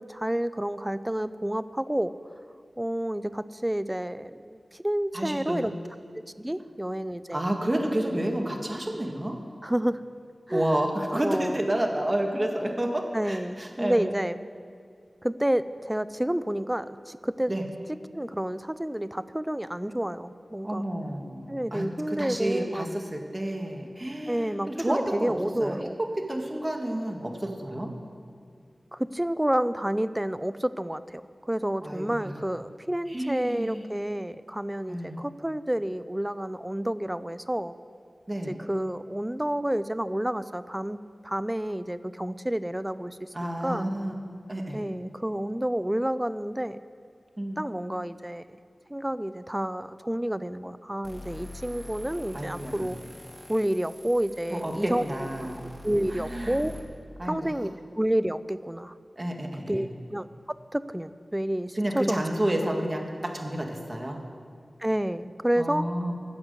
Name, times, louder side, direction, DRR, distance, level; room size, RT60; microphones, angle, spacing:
voice 1, 0.0-2.1 2.8-5.7 6.4-7.5 9.6-10.0 10.5-10.7 11.2-11.6 13.1-14.4 15.2-17.5 18.1-20.8 21.5-22.9 24.3-26.0 28.9-37.8 38.5-41.0 41.2-43.9 44.7-46.8 47.6-48.4 48.9-53.0 53.5-55.0 55.8-56.7 57.2-57.7 58.0-58.9 59.7-62.2 64.8-65.9, right 1 dB, 10° right, 14 dB, 0.5 m, -29 dB
voice 2, 5.1-5.7 7.3-9.3 10.5-14.1 17.5-17.6 20.6-25.3 25.6-25.8 26.3-27.9 31.8-32.3 33.1-33.8 34.9-35.2 38.3-38.6 43.3-44.1 44.5-44.8 47.4-47.6 52.3-52.9 54.5-55.6 56.1-56.6 57.2-57.4 59.2-59.9 61.7-64.2 65.6-66.2, right 1 dB, 30° right, 2 dB, 1.7 m, -30 dB
sound 1, 51.0-56.8, left 2 dB, 20° left, 2.2 m, -44 dB
15.0 x 6.1 x 8.0 m, 2.2 s
wide cardioid pair, 60°, 0 cm